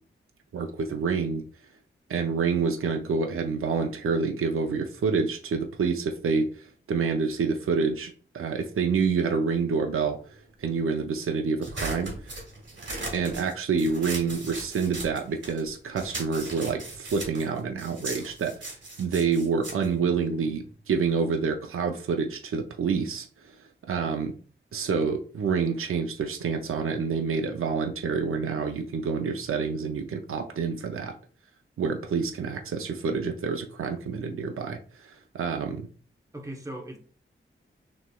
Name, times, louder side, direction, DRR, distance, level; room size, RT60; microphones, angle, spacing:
voice 1, 0.5-1.4 2.1-12.4 13.1-23.6 23.9-24.3 24.7-31.1 31.8-35.9, right 5 dB, 85° right, 0.5 m, -28 dB
sound 1, 11.6-15.7 16.0-20.8, right 2 dB, 60° right, 1.7 m, -38 dB
voice 2, 18.0-18.4 36.3-37.0, right 1 dB, 15° right, 0.9 m, -40 dB
5.9 x 3.1 x 2.3 m
wide cardioid pair, 115°, 21 cm